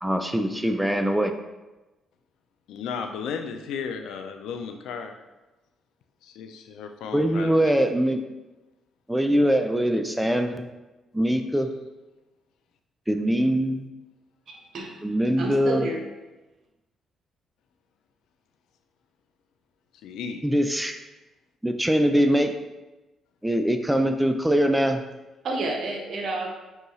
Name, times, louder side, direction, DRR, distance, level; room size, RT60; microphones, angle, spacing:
voice 1, 0.0-1.3 7.1-8.2 9.1-10.7 11.1-11.7 13.1-13.9 15.0-15.8 20.4-21.0 21.6-22.5 23.4-25.0, equal, 5° right, 6 dB, 0.4 m, -22 dB
voice 2, 2.7-5.2 6.2-7.8 20.0-20.5, left 6 dB, 85° left, 6 dB, 0.3 m, -34 dB
voice 3, 14.5-15.0 15.4-16.0 25.4-26.5, right 2 dB, 60° right, 1 dB, 0.8 m, -30 dB
5.3 x 2.3 x 3.1 m, 1.1 s
cardioid pair, 90°, 0 cm